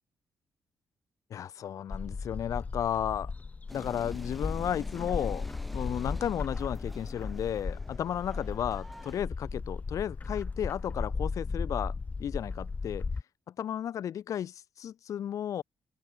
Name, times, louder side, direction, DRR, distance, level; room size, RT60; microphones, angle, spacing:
voice 1, 1.3-3.3 3.7-11.9 12.2-13.1 13.6-15.6, left 10 dB, 65° left, 0.9 m, -33 dB
Bird, 1.9-13.2, left 4 dB, 25° left, 0.4 m, -36 dB
sound 1, 3.7-9.2, equal, ahead, 7.3 m, -48 dB
open air
cardioid pair, 85°, 6 cm